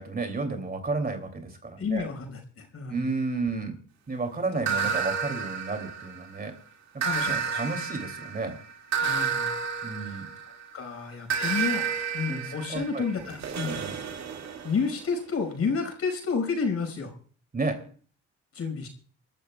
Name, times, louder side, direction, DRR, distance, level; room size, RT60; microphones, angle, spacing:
voice 1, 0.0-2.1 2.9-3.8 4.1-6.6 6.9-8.6 9.8-10.3 12.3-12.4 12.7-13.0 13.6-14.0 17.5-17.9, right 3 dB, 30° right, 6 dB, 2.8 m, -32 dB
voice 2, 1.8-3.1 4.5-4.9 7.0-7.7 9.0-9.5 10.1-10.2 10.7-13.8 14.6-17.1 18.5-18.9, left 5 dB, 50° left, 4 dB, 5.2 m, -31 dB
sound 1, 4.7-6.4 7.0-10.7 11.3-15.0, right 6 dB, 65° right, 2.2 m, -31 dB
28.0 x 13.0 x 2.3 m, 0.43 s
cardioid pair, 90°, 30 cm